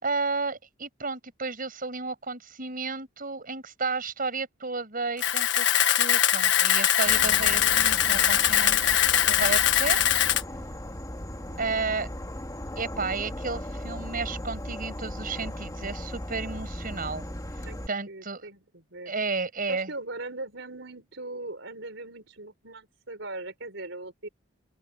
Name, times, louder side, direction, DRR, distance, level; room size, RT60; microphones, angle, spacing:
voice 1, 0.0-10.0 11.6-12.1 12.8-17.2 17.6-18.5 19.1-19.9, right 4 dB, 50° right, 6.6 m, -32 dB
Camera, 5.2-10.4, left 10 dB, 70° left, 1.5 m, -22 dB
Insect / Frog, 7.1-17.9, left 1 dB, 20° left, 2.5 m, -37 dB
voice 2, 11.3-11.6 17.7-19.1 19.7-24.3, right 2 dB, 70° right, 5.3 m, -40 dB
open air
head